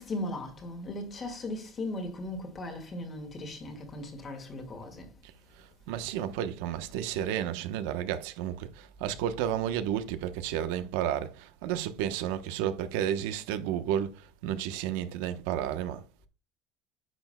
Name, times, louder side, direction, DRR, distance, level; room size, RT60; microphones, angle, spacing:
voice 1, 0.0-5.1, left 1 dB, 25° left, 1.9 m, -37 dB
voice 2, 5.6-16.0, right 10 dB, 90° right, 0.9 m, -32 dB
10.0 x 7.1 x 2.2 m
cardioid pair, 165°, 0 cm